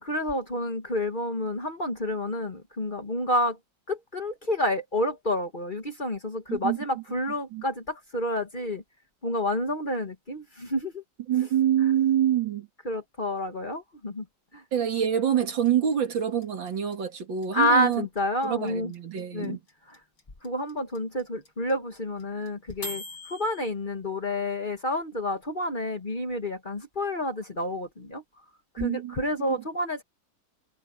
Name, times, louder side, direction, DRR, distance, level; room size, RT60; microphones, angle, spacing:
voice 1, 0.0-3.6 3.9-8.8 9.2-11.0 12.8-14.2 14.5-14.6 17.5-18.9 19.3-19.6 19.9-20.0 20.4-28.2 28.7-30.0, left 1 dB, 25° left, 1.7 m, -29 dB
voice 2, 6.5-7.0 7.5-7.6 11.3-12.7 14.7-18.1 18.4-19.6 28.8-29.5, right 9 dB, 75° right, 2.7 m, -26 dB
sound 1, 15.4-23.7, left 1 dB, 85° left, 7.5 m, -41 dB
omnidirectional pair, 2.1 m